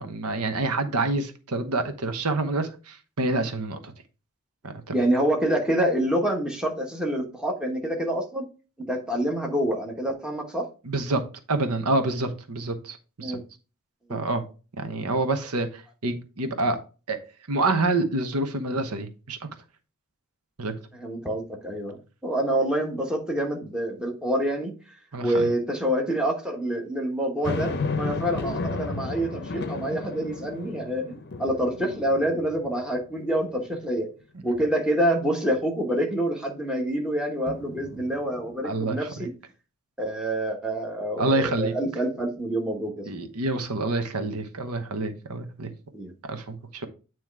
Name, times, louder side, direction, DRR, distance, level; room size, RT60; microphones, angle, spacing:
voice 1, 0.0-3.9 4.6-4.7 10.9-11.2 11.5-13.4 14.1-14.4 14.8-16.8 17.1-17.2 17.5-19.4 20.6-20.7 25.1-25.5 38.6-39.0 41.2-41.7 43.1-45.7 46.2-46.9, right 2 dB, 85° right, 1.0 m, -27 dB
voice 2, 4.9-8.5 8.9-10.7 13.2-13.4 20.9-24.7 25.2-34.1 34.4-39.3 40.0-43.1 45.9-46.1, right 1 dB, 5° right, 1.3 m, -27 dB
sound 1, 27.4-33.0 33.5-33.6 37.5-38.5, left 3 dB, 50° left, 0.7 m, -33 dB
9.2 x 3.1 x 4.7 m
head